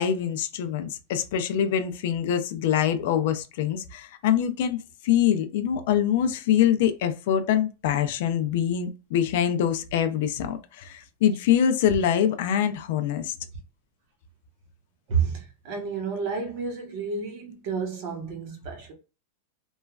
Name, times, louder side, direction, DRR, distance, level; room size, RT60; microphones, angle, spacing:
voice 1, 0.0-13.3, left 9 dB, 55° left, 0.3 m, -24 dB
voice 2, 15.1-18.9, right 5 dB, 40° right, 0.8 m, -30 dB
3.0 x 2.3 x 2.3 m
supercardioid pair, 170°, 0 cm